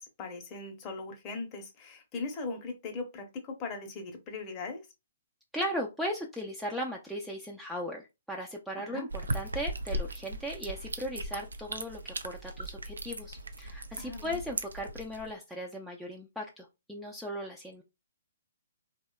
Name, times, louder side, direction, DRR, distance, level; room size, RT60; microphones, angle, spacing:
voice 1, 0.0-4.9 8.8-9.1 14.0-14.4, left 3 dB, 30° left, 0.7 m, -39 dB
voice 2, 5.5-17.8, equal, ahead, 0.3 m, -37 dB
sound 1, 9.1-15.3, right 1 dB, 85° right, 0.3 m, -38 dB
2.7 x 2.1 x 2.2 m
hypercardioid pair, 135°, 0 cm